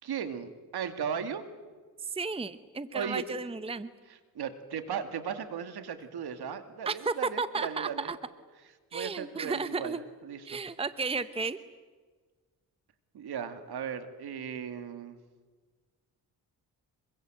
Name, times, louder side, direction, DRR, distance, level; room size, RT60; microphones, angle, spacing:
voice 1, 0.0-1.5 2.9-3.3 4.1-8.1 8.9-10.6 13.1-15.2, right 7 dB, 85° right, 9 dB, 2.2 m, -37 dB
voice 2, 2.1-3.9 6.9-8.2 8.9-10.0 10.5-11.6, right 4 dB, 15° right, 13 dB, 0.8 m, -33 dB
27.0 x 24.0 x 7.8 m, 1.5 s
cardioid pair, 100°, 38 cm